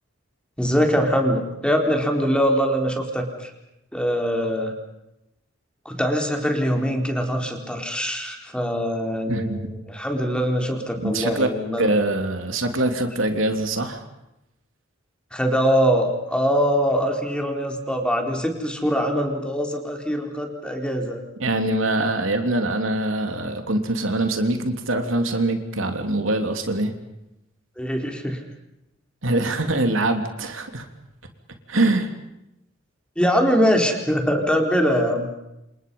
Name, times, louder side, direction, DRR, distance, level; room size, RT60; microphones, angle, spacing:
voice 1, 0.6-3.5 3.9-4.7 5.8-11.9 15.3-21.2 27.8-28.4 33.2-35.3, equal, 5° left, 2 dB, 4.1 m, -23 dB
voice 2, 9.3-9.6 11.0-11.5 11.8-14.0 21.4-26.9 29.2-30.9 31.7-32.1, right 2 dB, 75° right, 5 dB, 3.1 m, -23 dB
29.5 x 27.5 x 5.5 m, 0.88 s
head